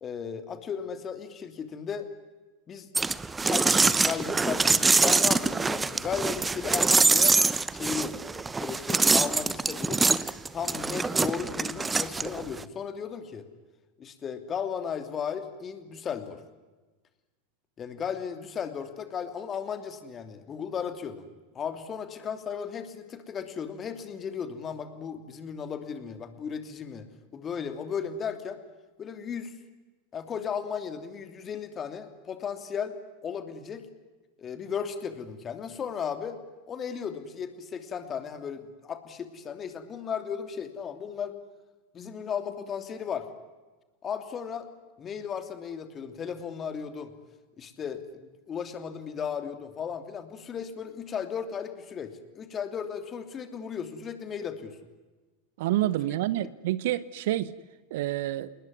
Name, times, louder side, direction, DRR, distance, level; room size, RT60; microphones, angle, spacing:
voice 1, 0.0-2.1 2.7-2.9 3.4-7.4 7.7-8.2 8.5-10.0 10.5-13.4 14.0-16.4 17.8-21.2 21.5-27.1 27.3-28.6 29.0-29.5 30.1-33.0 33.2-33.9 34.4-36.4 36.7-41.4 41.9-43.3 44.0-44.7 45.0-47.1 47.6-54.8, left 7 dB, 30° left, 2.9 m, -35 dB
sound 1, 2.9-12.6, right 3 dB, 15° right, 1.0 m, -24 dB
voice 2, 55.6-57.5 57.9-58.5, right 14 dB, 60° right, 1.0 m, -28 dB
28.0 x 20.0 x 9.7 m
figure-of-eight pair, 85°, 0 cm